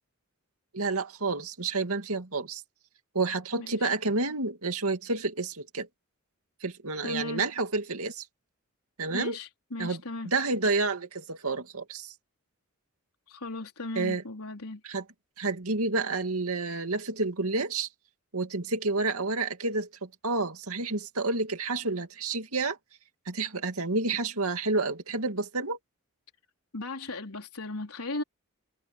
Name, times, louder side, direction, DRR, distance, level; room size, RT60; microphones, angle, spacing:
voice 1, 0.7-2.6 3.1-5.9 6.6-8.3 9.0-9.4 9.8-12.1 14.0-14.2 14.8-15.0 15.4-17.9 18.3-22.8 23.3-25.8, right 3 dB, 85° right, 2.4 m, -29 dB
voice 2, 7.0-7.4 9.1-10.3 13.3-14.8 26.7-28.2, left 2 dB, 85° left, 4.1 m, -36 dB
head